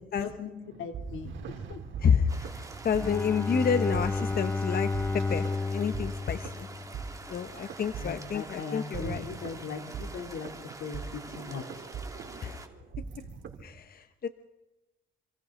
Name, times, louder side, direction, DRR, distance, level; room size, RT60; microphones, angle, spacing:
voice 1, 0.2-0.5 0.8-1.8 8.0-10.5 10.8-11.8, left 5 dB, 80° left, 4 dB, 3.4 m, -39 dB
sound 1, 0.6-13.6, right 6 dB, 75° right, 3.9 m, -41 dB
voice 2, 2.0-4.9 5.1-6.7 7.3-9.2 12.4-12.6 13.6-14.3, left 7 dB, 50° left, 9 dB, 1.2 m, -29 dB
sound 2, 2.3-12.7, right 2 dB, 15° right, 2.6 m, -46 dB
Bowed string instrument, 2.9-7.4, left 3 dB, 10° left, 1.4 m, -32 dB
28.0 x 26.5 x 4.0 m, 1.0 s
cardioid pair, 90°, 20 cm